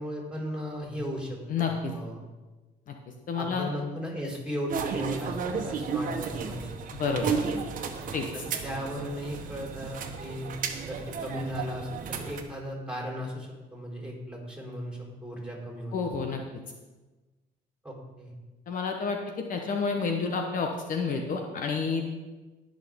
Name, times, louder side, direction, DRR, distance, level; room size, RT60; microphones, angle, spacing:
voice 1, 0.0-2.2 3.4-6.7 8.3-16.1 17.8-18.3, equal, 5° right, -3 dB, 3.9 m, -36 dB
voice 2, 1.5-1.9 3.3-3.7 7.0-7.4 8.1-8.2 15.9-16.4 18.7-22.1, left 5 dB, 55° left, 3 dB, 1.2 m, -29 dB
In the airplane, 4.7-12.4, right 6 dB, 55° right, 1.3 m, -33 dB
19.0 x 6.5 x 3.7 m, 1.2 s
cardioid pair, 110°, 17 cm